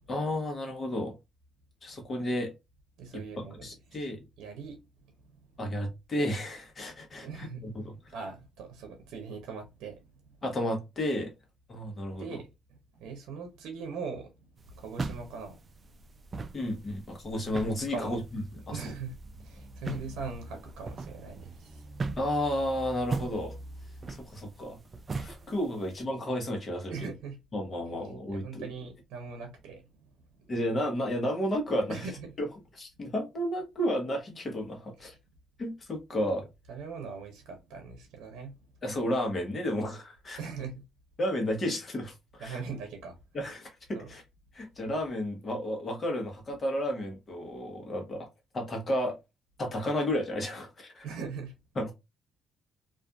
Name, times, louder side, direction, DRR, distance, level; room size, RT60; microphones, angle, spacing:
voice 1, 0.1-1.2 1.8-2.5 3.1-3.2 3.6-4.2 5.6-8.1 10.4-11.3 11.7-12.4 16.5-18.9 22.2-23.5 24.1-24.8 25.2-27.1 27.5-28.7 30.5-32.1 32.4-32.5 32.7-35.1 35.6-36.5 38.8-40.4 41.2-42.6 43.3-44.2 44.5-48.3 48.5-49.2 49.6-51.1 51.8-51.9, equal, 40° left, 1.0 m, -32 dB
voice 2, 3.0-4.1 4.4-4.8 5.3-5.4 7.2-7.7 8.1-10.1 12.1-12.5 12.9-14.3 14.7-16.0 17.9-18.2 18.7-21.9 26.9-27.4 28.3-30.1 30.4-30.5 31.9-32.3 36.2-36.3 36.7-38.5 40.4-40.8 42.4-43.2 43.9-44.1 51.0-51.5, right 5 dB, 90° right, 0.6 m, -41 dB
sound 1, 14.6-26.0, right 3 dB, 40° right, 0.3 m, -40 dB
2.5 x 2.4 x 2.3 m
cardioid pair, 90°, 0 cm